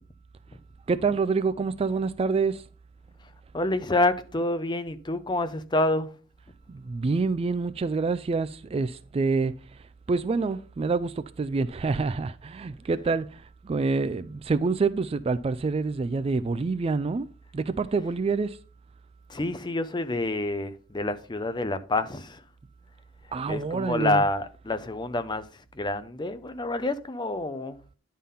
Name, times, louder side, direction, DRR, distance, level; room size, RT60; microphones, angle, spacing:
voice 1, 0.9-2.7 6.7-17.3 17.5-18.6 23.3-24.2, right 4 dB, 30° right, 0.3 m, -27 dB
voice 2, 3.5-6.1 19.3-22.4 23.5-27.8, left 2 dB, 25° left, 0.6 m, -28 dB
10.0 x 3.7 x 5.5 m
head